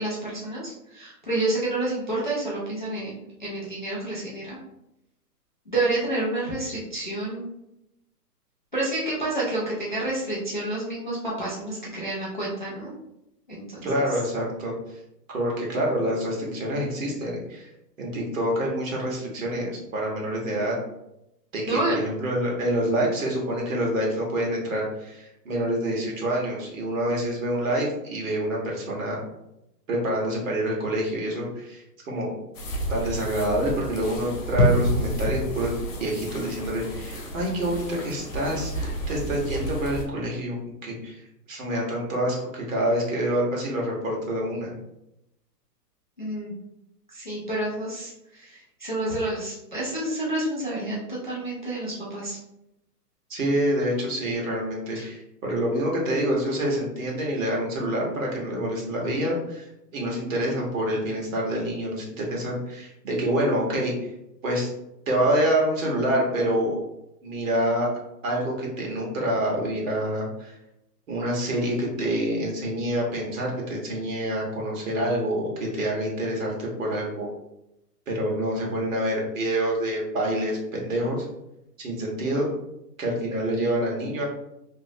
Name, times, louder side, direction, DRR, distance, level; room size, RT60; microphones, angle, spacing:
voice 1, 0.0-4.6 5.7-7.5 8.7-12.9 13.5-13.9 21.6-22.0 46.2-46.5 47.1-52.4 54.9-55.1, right 2 dB, 35° left, -7 dB, 0.4 m, -29 dB
voice 2, 13.8-14.7 15.3-17.7 18.0-20.8 21.5-29.2 29.9-32.3 32.9-35.7 36.0-41.2 41.5-44.7 53.3-59.7 59.9-63.9 64.4-64.7 65.1-66.8 67.2-67.9 68.2-70.5 71.1-77.3 78.1-81.2 81.8-82.5 83.0-84.2, right 1 dB, 50° right, -2 dB, 1.2 m, -27 dB
sound 1, 32.5-40.0, equal, 50° left, 0.9 m, -29 dB
3.0 x 2.9 x 2.7 m, 0.85 s
hypercardioid pair, 170°, 49 cm